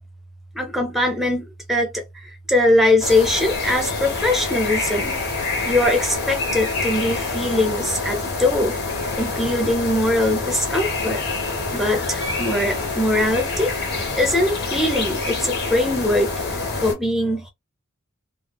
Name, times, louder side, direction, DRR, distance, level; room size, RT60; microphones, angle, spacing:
voice 1, 0.5-2.0 2.5-5.1 5.7-8.8 9.2-11.2 11.7-13.7 14.2-17.5, left 1 dB, ahead, 0.6 m, -21 dB
sound 1, 3.0-16.9, left 3 dB, 50° left, 1.0 m, -26 dB
3.2 x 2.0 x 2.2 m
head